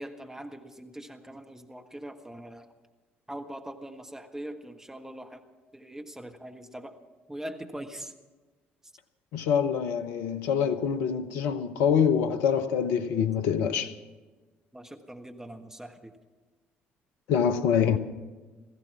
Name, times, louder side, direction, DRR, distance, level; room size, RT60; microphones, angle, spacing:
voice 1, 0.0-2.7 3.3-5.4 5.7-7.0 7.3-8.1 14.7-16.1, right 1 dB, 10° right, 1.4 m, -42 dB
voice 2, 9.3-13.9 17.3-18.0, left 7 dB, 65° left, 0.8 m, -25 dB
16.0 x 15.5 x 5.8 m
figure-of-eight pair, 50°, 6 cm